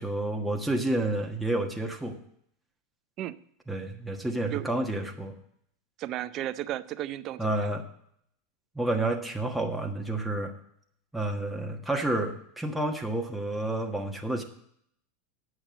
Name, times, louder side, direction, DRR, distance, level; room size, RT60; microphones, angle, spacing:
voice 1, 0.0-2.2 3.7-5.4 7.4-7.8 8.7-10.5 11.1-14.4, right 2 dB, ahead, 0 dB, 1.3 m, -30 dB
voice 2, 6.0-7.7, right 13 dB, 45° right, 14 dB, 0.5 m, -34 dB
8.9 x 6.3 x 7.4 m, 0.68 s
hypercardioid pair, 105°, 0 cm